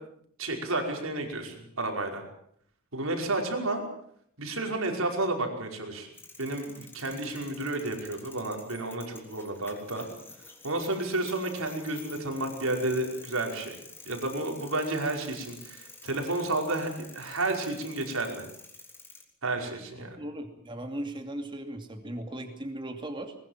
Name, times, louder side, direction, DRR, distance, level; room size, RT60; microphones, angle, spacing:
voice 1, 0.4-2.2 2.9-3.8 4.4-6.1 6.4-10.1 10.6-13.8 14.1-18.4 19.4-20.2, right 2 dB, 80° right, 3 dB, 5.4 m, -31 dB
sound 1, 6.1-19.2, left 3 dB, 10° left, 3.4 m, -49 dB
voice 2, 20.0-23.3, right 1 dB, 25° right, 4 dB, 2.7 m, -37 dB
21.5 x 21.5 x 7.4 m, 0.67 s
head